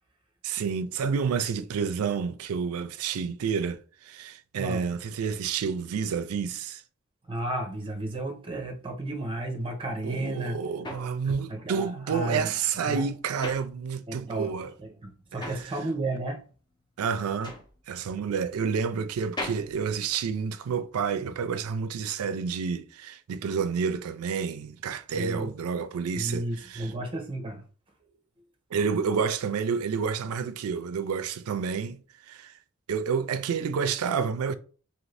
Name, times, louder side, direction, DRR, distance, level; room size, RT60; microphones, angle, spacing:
voice 1, 0.4-6.8 10.0-14.7 15.4-15.5 17.0-17.6 17.9-26.9 28.7-32.0 32.3-32.5 32.9-34.5, right 6 dB, 75° right, 0.4 m, -29 dB
voice 2, 7.2-10.6 11.5-12.5 12.8-13.1 14.1-14.5 14.8-16.5 25.1-25.5 26.1-27.7, right 1 dB, 25° right, 0.7 m, -33 dB
sound 1, 10.1-14.4 14.7-20.9, left 1 dB, 20° left, 0.5 m, -42 dB
2.7 x 2.6 x 3.2 m
head